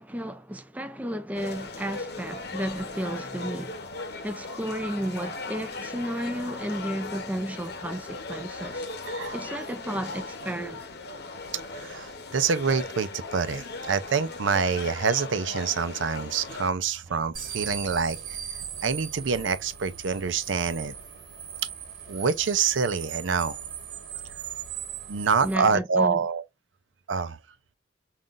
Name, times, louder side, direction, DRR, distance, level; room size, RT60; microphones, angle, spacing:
voice 1, 0.0-3.8 4.2-8.9 9.3-10.9 25.4-26.2, right 1 dB, 10° right, 0.4 m, -33 dB
sound 1, 1.3-16.7, left 3 dB, 60° left, 0.8 m, -38 dB
voice 2, 9.1-9.6 11.7-18.2 18.8-20.9 22.1-23.6 25.1-26.4 27.1-27.4, right 5 dB, 85° right, 0.5 m, -26 dB
sound 2, 17.3-25.5, right 8 dB, 60° right, 1.5 m, -39 dB
5.5 x 2.4 x 2.5 m
head